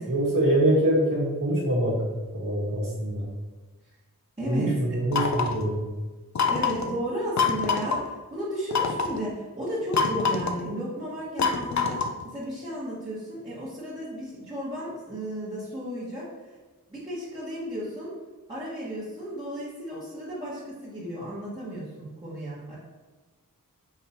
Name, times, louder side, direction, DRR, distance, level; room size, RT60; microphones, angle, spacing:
voice 1, 0.1-2.1 2.3-3.3 4.4-5.8, right 1 dB, 65° right, -4 dB, 1.3 m, -24 dB
voice 2, 4.4-4.9 6.5-16.6 16.9-18.2 18.5-22.8, equal, 15° right, -11 dB, 1.3 m, -34 dB
sound 1, 5.1-5.6 6.4-6.9 7.4-8.0 8.7-9.2 9.9-10.6 11.4-12.2, left 5 dB, 55° left, 0.4 m, -25 dB
5.3 x 2.9 x 2.7 m, 1.2 s
wide cardioid pair, 55°, 34 cm